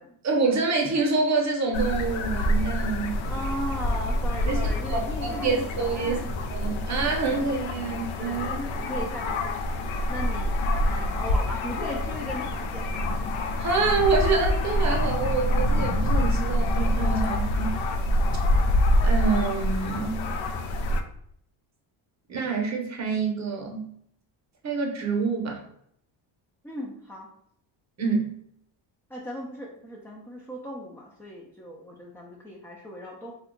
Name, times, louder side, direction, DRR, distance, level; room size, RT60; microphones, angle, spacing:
voice 1, 0.2-3.1 4.5-4.6 4.9-6.2 6.5-8.6 13.6-17.7 19.0-20.2 22.3-23.9 24.6-25.6 28.0-28.4, right 4 dB, 35° right, 2 dB, 0.8 m, -26 dB
sound 1, 1.7-21.0, left 1 dB, 75° left, 0.5 m, -26 dB
voice 2, 3.3-6.3 6.6-7.7 8.2-10.6 10.8-13.1 16.9-17.1 26.6-27.3 29.1-33.3, equal, 5° left, -3 dB, 0.3 m, -38 dB
2.6 x 2.2 x 3.7 m, 0.69 s
cardioid pair, 105°, 48 cm